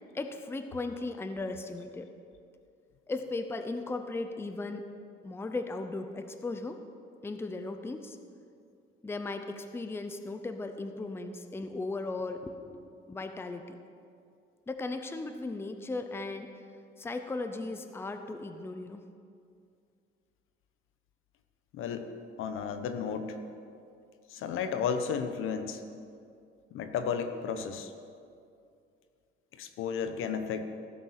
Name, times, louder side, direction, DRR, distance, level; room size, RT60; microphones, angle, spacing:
voice 1, 0.1-2.1 3.1-4.9 5.2-6.8 7.2-8.2 9.0-13.8 14.7-16.5 17.0-19.0, left 3 dB, 10° left, 7 dB, 0.6 m, -37 dB
voice 2, 21.7-22.1 22.4-23.4 24.3-25.8 26.7-27.9 29.6-30.7, left 6 dB, 75° left, 8 dB, 1.0 m, -33 dB
15.5 x 7.3 x 6.5 m, 2.4 s
cardioid pair, 150°, 21 cm